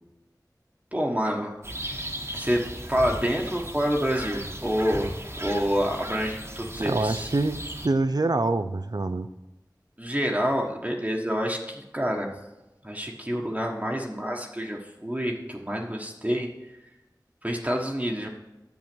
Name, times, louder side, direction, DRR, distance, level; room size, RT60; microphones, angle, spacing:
voice 1, 0.9-1.6 1.9-2.0 2.3-2.6 2.9-5.1 5.4-7.3 10.0-12.3 12.8-16.5 17.4-18.3, equal, 20° right, -1 dB, 1.4 m, -27 dB
sound 1, 1.6-7.9, right 1 dB, 40° right, 1.5 m, -36 dB
voice 2, 6.8-9.3, right 2 dB, 65° right, 11 dB, 0.6 m, -26 dB
10.5 x 7.5 x 6.1 m, 1.0 s
wide cardioid pair, 40°, 7 cm